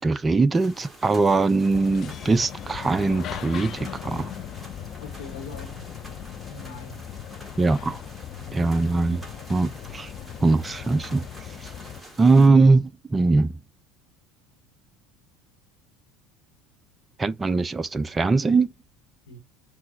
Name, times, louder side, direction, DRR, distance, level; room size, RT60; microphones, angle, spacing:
voice 1, 0.0-4.3 7.6-8.0 8.5-9.2 9.5-10.1 10.4-11.7 12.2-13.5 17.2-18.7, right 3 dB, 20° right, 0.3 m, -21 dB
sound 1, 0.5-12.5, right 1 dB, ahead, 1.8 m, -47 dB
sound 2, 1.7-12.0, left 9 dB, 45° left, 0.5 m, -38 dB
voice 2, 5.0-6.2 6.5-7.1 19.3-19.4, left 3 dB, 70° left, 1.3 m, -42 dB
7.2 x 2.5 x 2.8 m
figure-of-eight pair, 70°, 0 cm